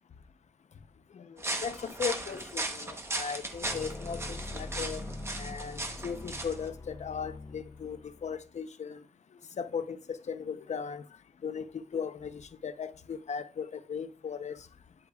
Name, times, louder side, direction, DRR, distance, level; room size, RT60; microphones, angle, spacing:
sound 1, 1.4-6.7, right 2 dB, 20° right, 0.9 m, -37 dB
voice 1, 1.6-5.0 5.4-9.0 9.6-11.0 11.4-14.6, left 6 dB, 70° left, 0.6 m, -37 dB
sound 2, 3.6-8.5, left 2 dB, 30° left, 0.5 m, -43 dB
9.9 x 8.2 x 2.3 m
wide cardioid pair, 170°, 12 cm